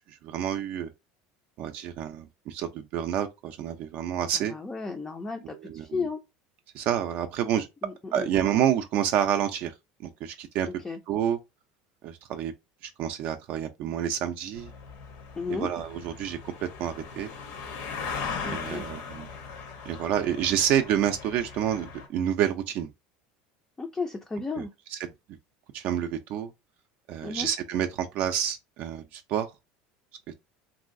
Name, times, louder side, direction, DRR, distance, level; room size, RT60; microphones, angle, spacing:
voice 1, 0.1-0.9 1.6-4.5 5.6-6.0 6.7-7.7 8.1-9.7 10.0-10.7 11.1-11.4 12.0-12.5 12.8-14.7 15.5-17.3 18.5-19.3 19.9-22.9 24.6-24.7 24.9-25.0 25.7-26.5 27.1-29.5 30.3-30.4, right 10 dB, 55° right, 0.4 m, -28 dB
voice 2, 4.3-6.2 7.8-8.3 10.8-11.0 15.4-15.7 18.4-18.8 23.8-24.7 27.2-27.5, left 4 dB, 15° left, 0.4 m, -34 dB
sound 1, 14.5-22.1, left 5 dB, 70° left, 0.9 m, -39 dB
3.0 x 2.6 x 2.5 m
supercardioid pair, 135°, 4 cm